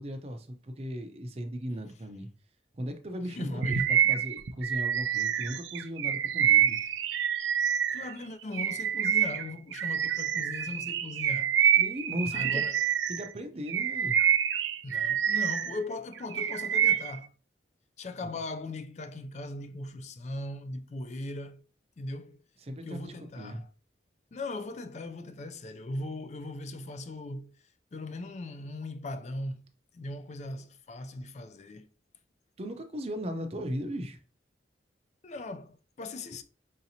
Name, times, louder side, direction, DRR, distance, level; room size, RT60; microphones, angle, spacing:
voice 1, 0.0-2.3 2.7-6.9 11.8-12.6 13.1-14.2 18.2-18.3 22.7-23.6 32.6-34.2, equal, 35° right, 0.5 m, -37 dB
voice 2, 3.3-3.9 7.9-11.5 12.3-12.8 14.8-17.3 18.0-21.6 22.0-22.4 22.8-23.7 24.3-27.5 27.9-29.7 29.9-31.9 35.2-36.4, left 2 dB, 40° left, 0.3 m, -39 dB
Bird vocalization bird call bird song, 3.6-8.1 8.5-13.3 13.7-15.8 16.1-17.2, right 9 dB, 85° right, 0.4 m, -27 dB
4.9 x 2.8 x 2.7 m
head